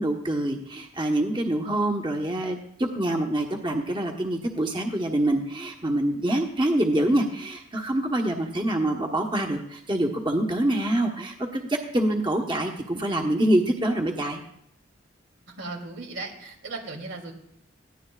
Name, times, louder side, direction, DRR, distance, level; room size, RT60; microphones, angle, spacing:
voice 1, 0.0-14.4, right 1 dB, 25° right, 2 dB, 1.1 m, -25 dB
voice 2, 15.6-17.3, right 3 dB, 90° right, 2 dB, 2.9 m, -37 dB
20.0 x 15.0 x 2.4 m, 0.75 s
head